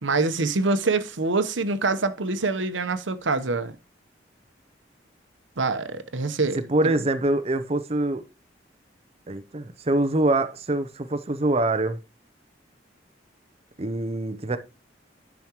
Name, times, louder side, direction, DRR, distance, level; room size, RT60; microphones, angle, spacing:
voice 1, 0.0-3.7 5.6-6.6, right 3 dB, 90° right, 1.0 m, -25 dB
voice 2, 6.5-8.2 9.3-12.0 13.8-14.6, right 2 dB, 35° right, 0.6 m, -24 dB
10.5 x 6.1 x 3.0 m
head